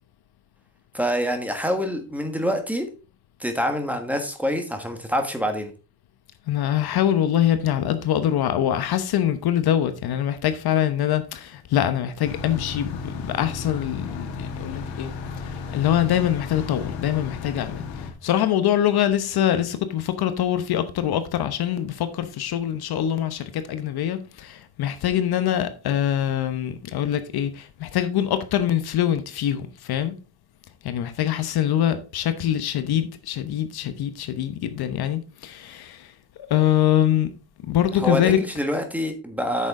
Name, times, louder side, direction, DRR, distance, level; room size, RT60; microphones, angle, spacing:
voice 1, 0.9-2.9 3.4-5.7 38.0-39.7, equal, 5° right, 1.5 m, -26 dB
voice 2, 6.5-15.1 15.4-30.2 30.8-37.3 37.7-38.4, left 11 dB, 55° left, 1.0 m, -24 dB
sound 1, 12.2-18.1, left 5 dB, 90° left, 2.0 m, -34 dB
8.9 x 6.6 x 3.7 m
cardioid pair, 135°, 44 cm